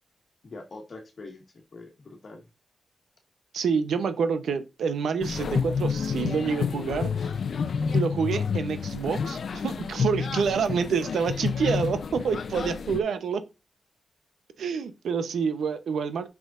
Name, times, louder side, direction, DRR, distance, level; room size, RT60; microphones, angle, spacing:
voice 1, 0.4-2.5, left 3 dB, 50° left, 1.7 m, -44 dB
voice 2, 3.5-7.3 7.9-13.4 14.6-16.3, right 6 dB, 90° right, 0.8 m, -27 dB
sound 1, 5.2-13.0, left 6 dB, 65° left, 0.6 m, -29 dB
8.1 x 6.1 x 2.6 m
wide cardioid pair, 100°, 0 cm